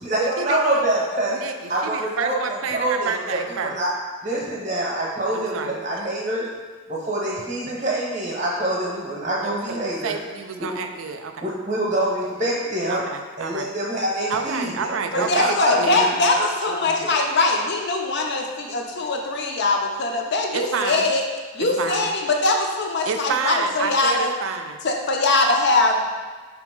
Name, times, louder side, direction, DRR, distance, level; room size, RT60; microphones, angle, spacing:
voice 1, 0.0-1.4 1.7-2.4 2.7-3.9 4.2-6.4 6.9-10.1 10.6-10.8 11.4-13.0 13.4-16.2 17.0-17.1, right 1 dB, 30° right, -6 dB, 0.8 m, -25 dB
voice 2, 1.8-3.8 5.3-5.8 9.4-9.8 10.0-11.5 12.9-13.7 14.3-16.0 20.5-21.1 21.6-22.1 23.1-24.8, right 5 dB, 75° right, 6 dB, 0.4 m, -29 dB
voice 3, 15.1-21.2 21.5-24.3 24.8-26.1, left 2 dB, 55° left, 2 dB, 0.5 m, -22 dB
5.0 x 2.9 x 3.7 m, 1.5 s
head